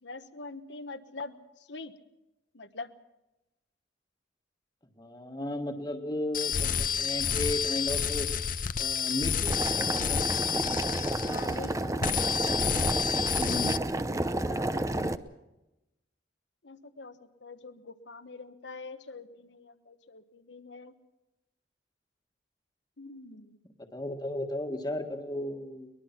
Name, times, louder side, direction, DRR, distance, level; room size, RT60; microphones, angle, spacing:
voice 1, 0.0-1.9 2.5-2.9 11.2-12.0 14.4-15.1 16.6-20.9 23.0-23.6, left 3 dB, 75° left, 11 dB, 1.3 m, -45 dB
voice 2, 5.0-8.3 8.8-10.3 13.4-13.8 23.9-25.9, left 1 dB, 20° left, 3 dB, 1.7 m, -35 dB
sound 1, 6.3-11.7 12.0-13.8, left 7 dB, 50° left, 0.7 m, -30 dB
Boiling, 9.5-15.2, right 1 dB, 15° right, 0.7 m, -30 dB
23.0 x 21.0 x 5.9 m, 0.96 s
head